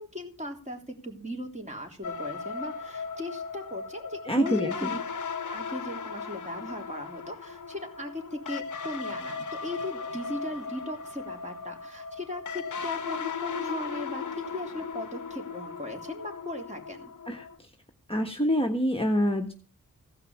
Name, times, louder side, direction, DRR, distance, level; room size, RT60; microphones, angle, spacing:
voice 1, 0.0-5.0 5.5-14.2 14.5-17.1, left 1 dB, 20° right, 2 dB, 3.5 m, -38 dB
sound 1, 2.0-17.6, left 5 dB, 65° left, 0.9 m, -37 dB
voice 2, 4.3-4.9 17.3-17.5 18.1-19.5, equal, 15° left, 2 dB, 1.4 m, -26 dB
16.0 x 5.7 x 7.2 m, 0.38 s
wide cardioid pair, 75°, 33 cm